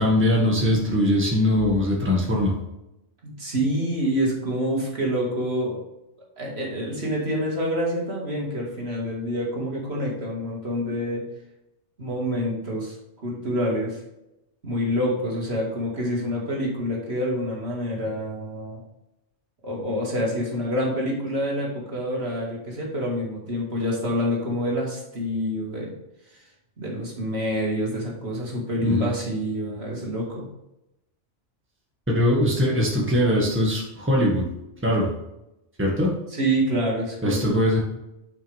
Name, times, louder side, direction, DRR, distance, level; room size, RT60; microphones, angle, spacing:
voice 1, 0.0-2.5 28.8-29.1 32.1-34.5 34.8-35.1 35.8-36.1 37.2-37.8, left 1 dB, 10° right, -2 dB, 1.7 m, -21 dB
voice 2, 3.2-5.8 6.4-11.2 12.0-13.0 13.2-14.0 14.6-18.8 19.6-25.9 26.8-30.4 36.3-37.8, equal, 60° right, -3 dB, 2.4 m, -27 dB
8.8 x 5.9 x 3.5 m, 0.89 s
omnidirectional pair, 1.3 m